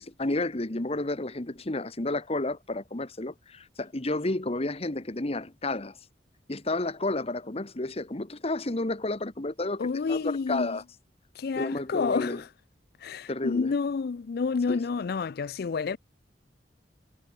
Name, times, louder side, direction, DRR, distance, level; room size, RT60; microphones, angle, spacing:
voice 1, 0.0-6.0 6.5-9.8 10.1-10.8 11.6-12.4 13.3-13.7 14.7-14.8, left 2 dB, 35° left, 1.4 m, -31 dB
voice 2, 9.8-10.8 11.4-12.5 13.0-16.0, left 5 dB, 60° left, 0.4 m, -29 dB
head